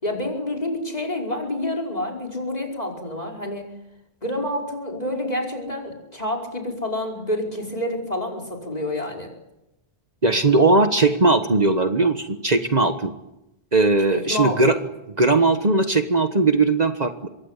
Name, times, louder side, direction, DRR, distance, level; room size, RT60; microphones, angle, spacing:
voice 1, 0.0-3.7 4.2-9.3 14.1-14.8, left 1 dB, 40° left, 0 dB, 5.3 m, -28 dB
voice 2, 10.2-13.1 13.7-14.7 15.2-17.3, right 3 dB, 45° right, 8 dB, 1.4 m, -19 dB
25.5 x 21.5 x 8.3 m, 0.92 s
omnidirectional pair, 1.0 m